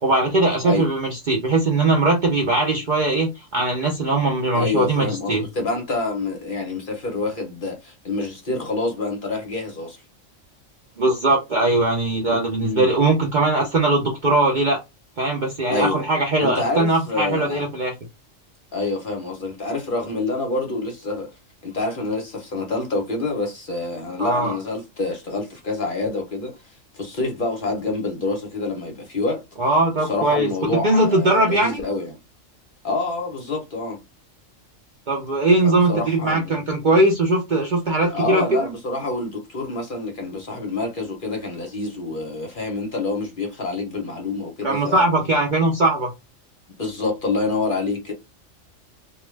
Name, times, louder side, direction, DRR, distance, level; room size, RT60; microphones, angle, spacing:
voice 1, 0.0-5.5 11.0-14.8 15.2-17.9 24.2-24.5 29.6-30.5 30.8-31.8 35.1-38.7 44.6-46.1, right 2 dB, 50° right, 0.6 m, -20 dB
voice 2, 4.5-10.0 12.6-12.9 15.7-16.0 16.4-17.7 18.7-21.3 21.6-26.6 26.9-29.4 30.0-32.1 32.8-34.0 35.6-36.6 38.1-45.1 46.8-48.1, left 3 dB, 50° left, 0.8 m, -27 dB
2.4 x 2.2 x 3.1 m
omnidirectional pair, 1.3 m